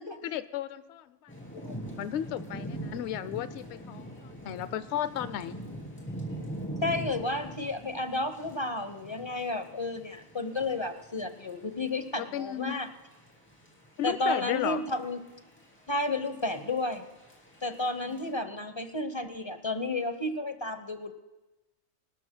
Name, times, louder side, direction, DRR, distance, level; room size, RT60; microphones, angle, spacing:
voice 1, 0.0-1.3 2.0-5.6 12.2-12.8 14.0-14.8 18.0-18.3, left 11 dB, 70° left, 14 dB, 0.8 m, -34 dB
Thunder / Rain, 1.3-18.3, right 1 dB, 10° left, 3.0 m, -43 dB
voice 2, 6.8-12.9 14.0-15.2 15.9-17.0 17.6-21.1, left 2 dB, 25° left, 8 dB, 0.8 m, -32 dB
25.5 x 12.5 x 2.2 m, 1.1 s
omnidirectional pair, 1.2 m